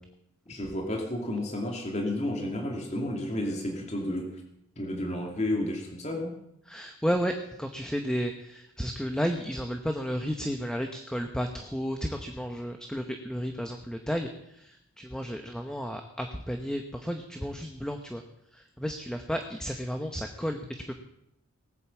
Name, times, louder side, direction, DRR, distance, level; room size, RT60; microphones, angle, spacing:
voice 1, 0.5-4.3 4.8-6.3, left 1 dB, 30° left, 1 dB, 2.6 m, -31 dB
voice 2, 6.7-18.2 18.5-20.9, equal, 5° left, 5 dB, 0.9 m, -32 dB
19.5 x 9.3 x 7.2 m, 0.80 s
head